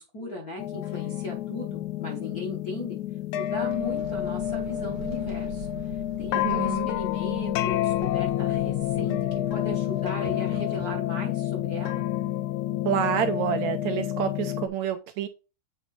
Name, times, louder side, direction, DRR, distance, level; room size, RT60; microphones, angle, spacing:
voice 1, 0.0-3.0 3.3-12.1, left 1 dB, 45° left, 1.2 m, -37 dB
sound 1, 0.6-14.7, left 13 dB, 80° left, 1.9 m, -29 dB
sound 2, 3.4-11.0, right 5 dB, 55° right, 1.3 m, -44 dB
voice 2, 6.4-6.9 12.8-15.3, right 10 dB, 80° right, 1.7 m, -28 dB
8.0 x 3.0 x 4.1 m
omnidirectional pair, 3.5 m